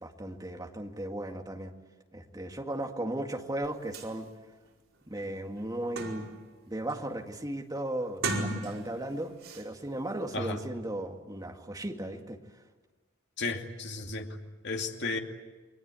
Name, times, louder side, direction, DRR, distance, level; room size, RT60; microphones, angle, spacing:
voice 1, 0.0-1.7 2.1-4.3 5.1-6.3 6.7-12.4, right 1 dB, 20° right, 3 dB, 2.0 m, -36 dB
sound 1, 3.6-3.7 3.9-4.1 4.7-4.8 5.2-6.5 6.9-7.3 8.1-9.1 9.4-9.6, right 2 dB, 75° right, 4.8 m, -36 dB
voice 2, 13.4-14.3 14.6-15.2, left 3 dB, 55° left, 3 dB, 2.5 m, -33 dB
29.5 x 22.5 x 8.4 m, 1.3 s
head